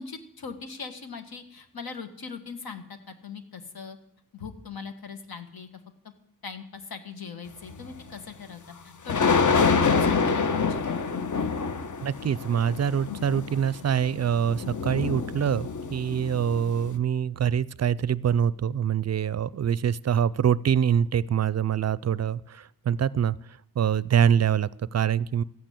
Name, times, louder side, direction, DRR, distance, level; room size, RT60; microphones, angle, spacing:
voice 1, 0.0-4.0 4.3-5.7 6.4-10.8, left 5 dB, 80° left, 8 dB, 1.8 m, -40 dB
sound 1, 7.7-7.8 9.1-17.0, left 5 dB, 55° left, 1.0 m, -26 dB
voice 2, 12.0-23.3 23.8-25.4, right 8 dB, 45° right, 21 dB, 0.4 m, -25 dB
14.0 x 9.0 x 7.5 m, 0.75 s
wide cardioid pair, 95°, 36 cm